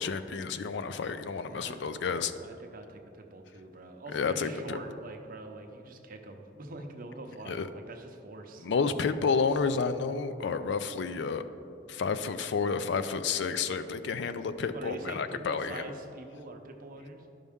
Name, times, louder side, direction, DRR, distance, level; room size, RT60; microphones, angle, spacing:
voice 1, 0.0-2.3 4.1-4.8 7.5-7.7 8.6-11.4 11.9-15.8, left 5 dB, 65° left, 11 dB, 0.4 m, -30 dB
voice 2, 1.5-8.7 14.7-17.3, right 2 dB, 50° right, 4 dB, 0.7 m, -44 dB
12.0 x 5.4 x 3.5 m, 2.7 s
head